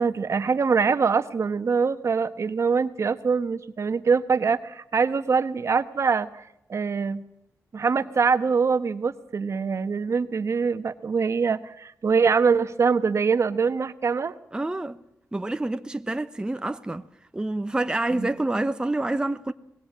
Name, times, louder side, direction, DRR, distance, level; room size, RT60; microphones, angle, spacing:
voice 1, 0.0-7.2 7.7-14.3 18.1-18.3, right 5 dB, 55° right, 1.4 m, -24 dB
voice 2, 14.5-15.0 15.3-17.0 17.3-19.5, right 2 dB, 15° right, 0.9 m, -27 dB
25.5 x 20.5 x 7.5 m
wide cardioid pair, 105°, 6 cm